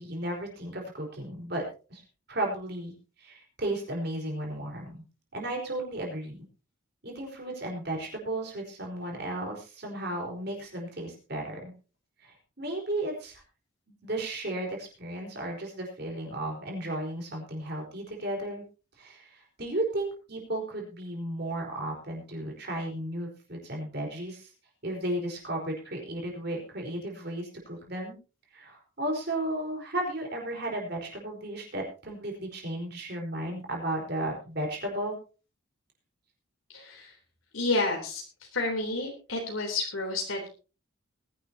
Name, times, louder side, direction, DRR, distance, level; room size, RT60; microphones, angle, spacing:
voice 1, 0.0-1.6 1.9-2.0 2.3-5.0 5.3-6.4 7.0-11.7 12.2-13.4 14.0-18.6 19.0-24.5 24.8-28.2 28.5-35.2, right 1 dB, 50° right, 0 dB, 4.6 m, -34 dB
voice 2, 36.7-37.1 37.5-38.2 38.5-40.5, left 2 dB, 75° left, 1 dB, 3.6 m, -30 dB
20.5 x 11.0 x 2.9 m, 0.34 s
head